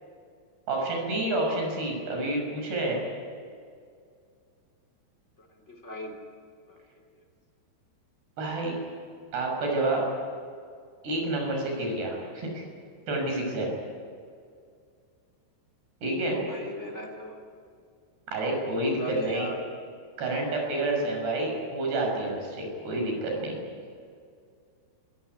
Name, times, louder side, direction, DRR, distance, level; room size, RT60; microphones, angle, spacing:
voice 1, 0.7-3.0 8.4-8.8 9.3-10.0 11.0-12.6 13.1-13.7 16.0-16.4 18.3-19.5 20.2-23.6, right 2 dB, 60° right, 1 dB, 8.3 m, -29 dB
voice 2, 5.4-6.2 6.7-6.8 16.3-17.4 19.0-19.6, left 1 dB, 15° left, 1 dB, 2.8 m, -38 dB
27.0 x 16.5 x 9.7 m, 2.2 s
omnidirectional pair, 5.4 m